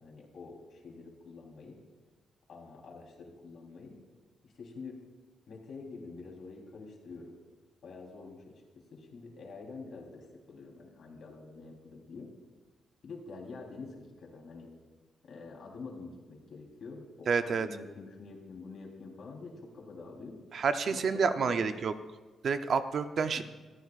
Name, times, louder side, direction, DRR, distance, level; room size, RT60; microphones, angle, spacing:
voice 1, 0.0-1.8 2.5-4.0 4.4-5.0 5.5-7.4 7.8-8.6 8.9-12.3 13.0-14.7 15.3-20.4 20.9-21.7 23.4-23.5, left 4 dB, 55° left, -1 dB, 3.5 m, -47 dB
voice 2, 17.3-17.7 20.5-21.9 22.4-23.4, right 5 dB, 45° right, 9 dB, 0.6 m, -29 dB
25.5 x 14.0 x 2.5 m, 1.3 s
wide cardioid pair, 170°, 0 cm